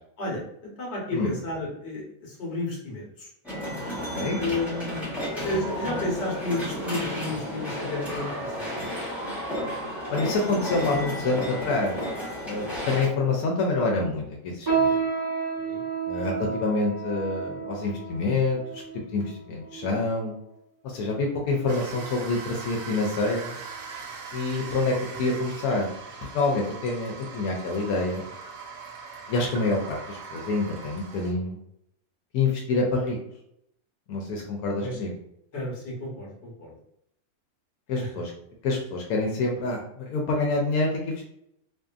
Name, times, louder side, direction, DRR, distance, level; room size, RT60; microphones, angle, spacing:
voice 1, 0.2-3.3 4.4-5.1 5.4-8.8 13.0-13.2 15.6-15.8 24.9-25.2 34.8-35.0 35.5-36.7 38.0-38.1, left 2 dB, 50° left, -3 dB, 1.2 m, -32 dB
sound 1, 3.4-13.1, equal, ahead, 0.7 m, -32 dB
voice 2, 10.1-12.0 12.4-15.0 16.1-18.8 19.1-19.2 19.5-20.3 20.8-23.6 24.3-25.9 26.3-28.3 29.3-31.6 32.3-33.2 34.1-35.1 37.9-38.3 38.6-41.3, left 3 dB, 85° left, 0 dB, 1.1 m, -27 dB
sound 2, 14.7-20.3 21.0-21.1 21.9-22.2 22.6-22.7 23.4-23.5, right 5 dB, 30° right, 1.1 m, -30 dB
sound 3, 21.7-31.3, right 5 dB, 65° right, 0.9 m, -41 dB
2.6 x 2.5 x 2.3 m, 0.75 s
omnidirectional pair, 1.5 m